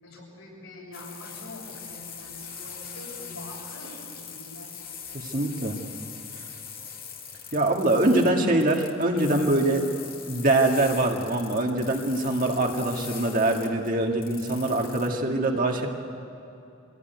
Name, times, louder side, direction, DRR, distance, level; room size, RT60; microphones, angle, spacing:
voice 1, 0.0-4.7 8.0-8.6, left 1 dB, 85° left, -3 dB, 7.3 m, -44 dB
sound 1, 0.9-15.1, left 7 dB, 45° left, 2.1 m, -42 dB
voice 2, 5.1-5.7 7.5-9.9 10.3-15.9, right 2 dB, 40° right, 1 dB, 2.0 m, -23 dB
24.0 x 17.0 x 9.5 m, 2.7 s
head